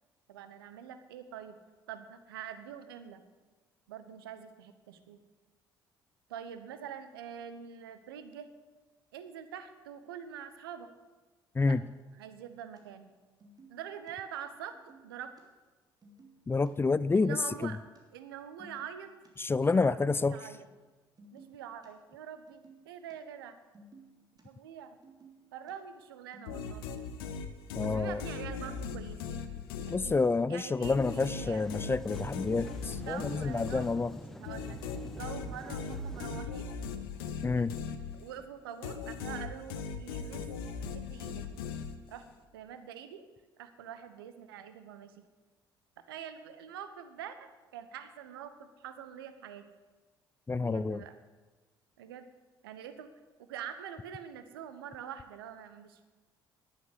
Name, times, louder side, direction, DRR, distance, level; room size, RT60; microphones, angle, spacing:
voice 1, 0.3-1.6 1.9-3.2 3.9-5.2 6.3-8.5 9.1-10.9 11.6-11.8 12.2-13.1 13.7-14.8 15.0-15.3 17.1-17.8 18.1-19.1 19.7-20.7 21.3-23.6 24.4-25.0 25.5-27.0 27.8-29.5 29.9-30.2 30.5-31.6 33.0-33.9 34.4-34.8 35.1-36.7 38.1-40.4 40.9-41.4 42.1-42.3 42.5-43.2 43.6-45.1 46.1-49.7 50.6-51.2 52.0-52.3 52.6-53.1 53.4-56.0, right 9 dB, 75° right, 10 dB, 1.0 m, -45 dB
sound 1, 12.8-12.9 13.1-13.2 13.4-14.1 14.7-15.4 15.7-15.8 16.0-16.7 17.3-18.0 18.3-19.3 19.8-20.6 20.8-20.9 21.2-21.9 22.3-23.1 23.4-24.4 24.9-25.7 26.0-27.0 27.5-28.3, right 3 dB, 30° right, 3.2 m, -57 dB
voice 2, 16.5-17.8 19.4-20.4 27.8-28.2 29.9-34.1 37.4-37.7 50.5-51.0, left 3 dB, 20° left, 17 dB, 0.5 m, -29 dB
sound 2, 26.5-30.4 30.8-38.5 38.8-42.3, left 5 dB, 70° left, 1.0 m, -39 dB
sound 3, 30.9-36.4, equal, 5° left, 1.0 m, -47 dB
11.0 x 10.0 x 8.1 m, 1.2 s
figure-of-eight pair, 50°, 12 cm